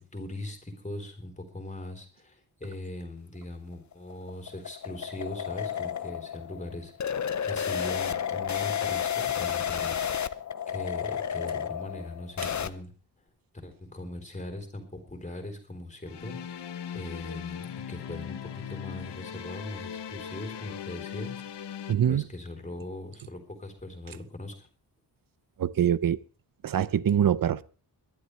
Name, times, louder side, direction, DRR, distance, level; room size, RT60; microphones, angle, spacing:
voice 1, 0.0-10.0 10.7-12.9 13.5-16.7 16.9-21.7 22.1-24.7, left 1 dB, 15° left, 3.8 m, -40 dB
sound 1, 3.7-12.7, left 8 dB, 45° left, 0.7 m, -31 dB
sound 2, 16.1-21.9, left 9 dB, 90° left, 1.0 m, -39 dB
voice 2, 21.9-22.2 25.6-26.2 26.6-27.6, right 9 dB, 55° right, 0.7 m, -24 dB
22.0 x 11.5 x 3.3 m
wide cardioid pair, 135°, 40 cm